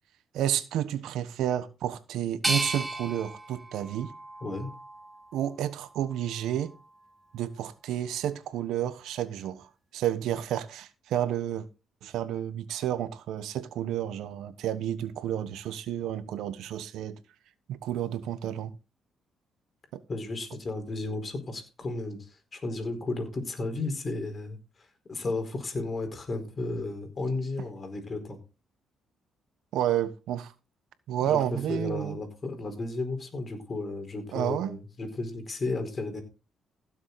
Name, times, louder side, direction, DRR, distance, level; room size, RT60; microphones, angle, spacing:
voice 1, 0.3-4.1 5.3-6.7 7.3-9.7 9.9-11.6 12.0-17.2 17.7-18.8 19.9-20.0 29.7-30.5 31.1-32.2 34.3-34.8, right 11 dB, 85° right, 1.1 m, -30 dB
sound 1, 2.4-5.4 5.9-6.7, right 2 dB, 20° right, 1.8 m, -35 dB
voice 2, 20.1-24.6 25.1-28.4 31.2-36.2, left 2 dB, 35° left, 4.5 m, -33 dB
16.0 x 7.2 x 4.1 m
cardioid pair, 90°, 0 cm